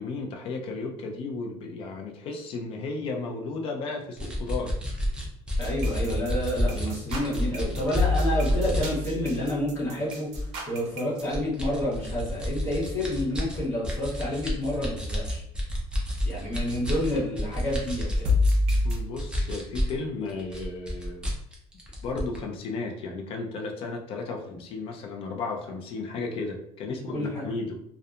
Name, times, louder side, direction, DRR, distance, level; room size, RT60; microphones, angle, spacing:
voice 1, 0.0-4.8 18.8-21.3 22.0-27.7, left 3 dB, 50° left, 2 dB, 0.5 m, -34 dB
sound 1, 4.2-8.8 9.3-9.5 10.1-10.6 11.2-20.0 20.3-22.4, equal, 5° right, 0.5 m, -30 dB
sound 2, 5.5-11.2 18.2-19.0, left 2 dB, 60° right, 0.7 m, -27 dB
voice 2, 5.6-15.4 16.2-18.3 26.9-27.5, left 1 dB, 20° left, -8 dB, 1.3 m, -29 dB
2.7 x 2.2 x 2.4 m, 0.73 s
cardioid pair, 165°, 12 cm